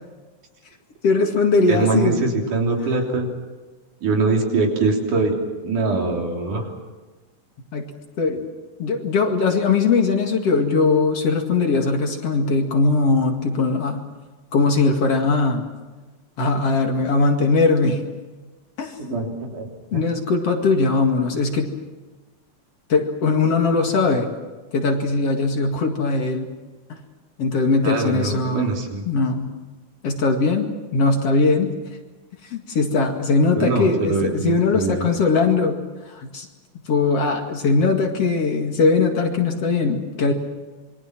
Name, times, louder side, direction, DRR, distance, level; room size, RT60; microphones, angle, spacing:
voice 1, 1.0-2.2 7.7-7.9 8.2-8.4 8.8-14.0 14.5-15.7 16.4-18.0 18.8-18.9 19.9-21.7 22.9-24.3 24.7-26.5 27.4-28.7 29.1-29.5 30.0-31.7 32.5-35.8 36.1-36.5 36.9-40.3, left 4 dB, 50° left, 3 dB, 3.0 m, -20 dB
voice 2, 1.7-3.3 4.0-5.4 5.6-6.7 19.0-19.7 19.9-20.0 27.8-29.0 33.6-35.1, right 3 dB, 75° right, 1 dB, 4.9 m, -23 dB
27.0 x 23.0 x 6.1 m, 1.3 s
omnidirectional pair, 3.6 m